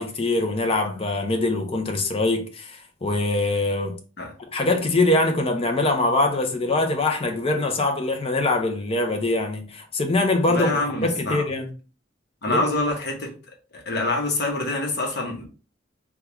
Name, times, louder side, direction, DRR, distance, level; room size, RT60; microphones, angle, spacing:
voice 1, 0.0-4.0 4.5-11.7 12.5-12.6, left 2 dB, 30° left, 0.6 m, -23 dB
voice 2, 10.5-11.5 12.4-13.3 13.7-15.5, left 2 dB, 60° left, 1.0 m, -26 dB
3.5 x 2.3 x 2.9 m
head